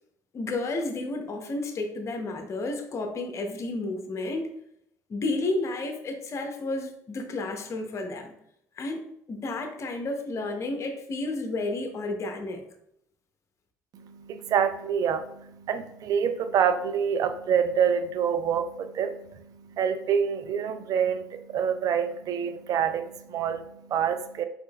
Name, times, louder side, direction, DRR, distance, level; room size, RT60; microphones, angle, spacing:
voice 1, 0.3-4.5 5.1-8.3 8.8-12.6, left 2 dB, 40° left, 0.6 m, -31 dB
voice 2, 13.9-24.4, right 7 dB, 55° right, 0.4 m, -27 dB
3.6 x 3.4 x 2.2 m
supercardioid pair, 80°, 7 cm